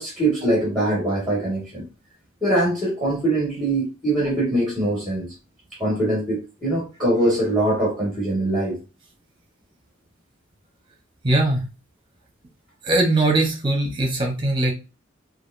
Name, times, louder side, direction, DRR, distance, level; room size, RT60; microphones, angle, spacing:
voice 1, 0.0-1.8 2.4-5.3 5.8-8.8, right 1 dB, ahead, -4 dB, 1.9 m, -22 dB
voice 2, 11.2-11.7 12.8-14.7, right 2 dB, 25° right, 1 dB, 1.1 m, -20 dB
5.0 x 2.7 x 2.6 m, 0.30 s
head